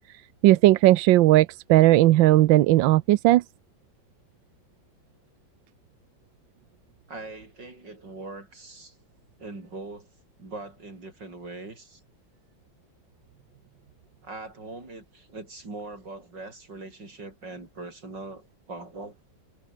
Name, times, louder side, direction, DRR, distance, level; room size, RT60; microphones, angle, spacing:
voice 1, 0.4-3.4, right 16 dB, 80° right, 1.3 m, -17 dB
voice 2, 7.1-9.0 9.4-10.1 10.4-12.0 14.2-19.2, right 2 dB, 65° right, 6.7 m, -41 dB
omnidirectional pair, 2.1 m